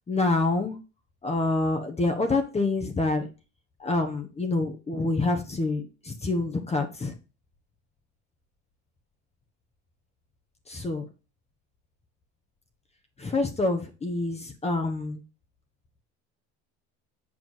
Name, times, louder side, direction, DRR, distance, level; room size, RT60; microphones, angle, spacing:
voice 1, 0.1-0.8 1.2-3.3 3.8-7.1 10.7-11.1 13.2-15.2, left 2 dB, 20° left, 5 dB, 1.2 m, -27 dB
7.3 x 4.6 x 4.1 m, 0.32 s
supercardioid pair, 105°, 33 cm